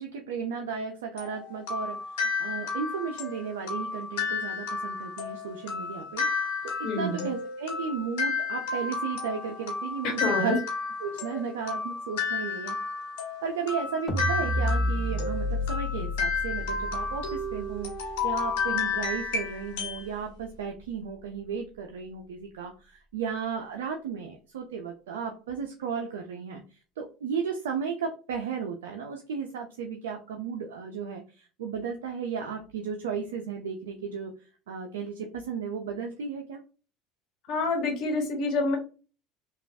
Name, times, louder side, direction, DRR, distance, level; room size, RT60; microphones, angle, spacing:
voice 1, 0.0-6.3 6.6-10.6 11.0-12.8 13.4-34.3 34.7-36.6, right 6 dB, 90° right, 3 dB, 0.4 m, -34 dB
sound 1, 1.2-20.1, left 5 dB, 75° left, 1.1 m, -32 dB
voice 2, 6.8-7.3 10.0-10.6 37.5-38.8, left 3 dB, 55° left, 1 dB, 1.2 m, -27 dB
sound 2, 14.1-20.4, left 1 dB, 15° left, 0.6 m, -32 dB
3.0 x 2.3 x 2.6 m, 0.35 s
hypercardioid pair, 85°, 0 cm